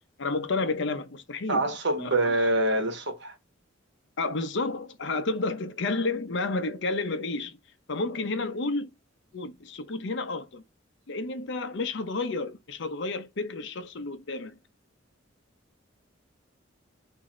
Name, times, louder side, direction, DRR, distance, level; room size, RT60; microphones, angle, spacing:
voice 1, 0.2-1.7 2.0-2.4 4.2-7.6 7.9-8.9 9.3-10.6 11.1-14.6, left 3 dB, 65° left, 0.7 m, -31 dB
voice 2, 1.5-3.3, right 2 dB, 65° right, 1.1 m, -25 dB
6.2 x 2.7 x 3.1 m
head